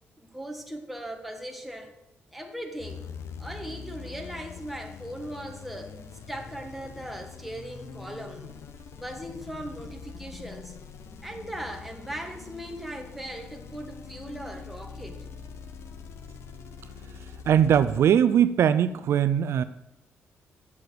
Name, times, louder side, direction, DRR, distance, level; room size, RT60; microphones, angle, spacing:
voice 1, 0.2-1.9 2.3-3.0 3.4-6.0 6.3-8.5 8.9-10.7 11.2-15.3, right 1 dB, ahead, 3 dB, 1.6 m, -39 dB
sound 1, 2.8-18.0, left 6 dB, 70° left, 0.9 m, -43 dB
voice 2, 17.5-19.6, right 9 dB, 70° right, 13 dB, 0.4 m, -21 dB
8.5 x 6.7 x 7.7 m, 0.92 s
cardioid pair, 95°, 5 cm